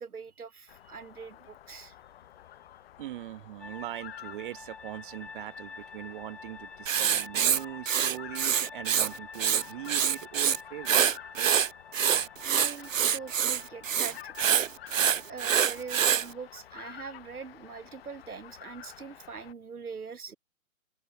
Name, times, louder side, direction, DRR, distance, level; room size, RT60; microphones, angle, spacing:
voice 1, 0.0-2.0 12.4-14.3 15.3-20.4, right 5 dB, 85° right, 2.7 m, -43 dB
sound 1, 0.7-19.5, left 12 dB, 40° left, 5.4 m, -50 dB
voice 2, 3.0-11.5, right 14 dB, 35° right, 2.6 m, -41 dB
sound 2, 3.6-19.4, left 5 dB, 5° left, 0.7 m, -49 dB
Writing, 6.9-9.1 9.4-10.6 10.9-16.3, right 8 dB, 60° right, 1.9 m, -25 dB
hypercardioid pair, 145°, 43 cm